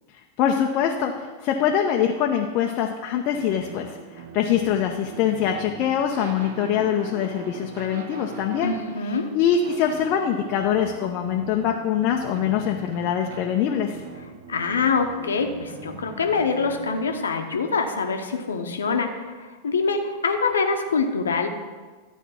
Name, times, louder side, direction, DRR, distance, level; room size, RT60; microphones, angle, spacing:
voice 1, 0.4-8.7 9.3-14.0, left 8 dB, 40° left, 2 dB, 0.7 m, -24 dB
sound 1, 3.3-17.2, right 5 dB, 55° right, 0.8 m, -41 dB
voice 2, 8.6-9.3 14.5-21.5, left 4 dB, 70° left, 5 dB, 0.9 m, -25 dB
12.0 x 4.5 x 5.8 m, 1.4 s
figure-of-eight pair, 90°, 0 cm